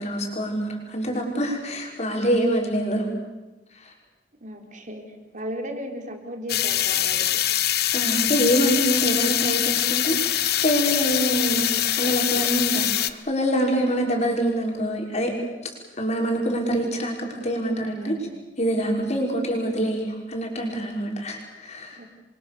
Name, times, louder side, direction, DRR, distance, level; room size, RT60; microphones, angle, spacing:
voice 1, 0.0-3.1 3.8-3.9 7.9-15.3 16.0-18.2 18.6-22.0, equal, 40° left, 1 dB, 5.9 m, -25 dB
voice 2, 4.4-7.4 17.7-18.3 21.9-22.0, equal, 45° right, 3 dB, 4.1 m, -36 dB
sound 1, 6.5-13.1, left 12 dB, 60° left, 1.1 m, -23 dB
29.0 x 24.0 x 7.1 m, 1.1 s
head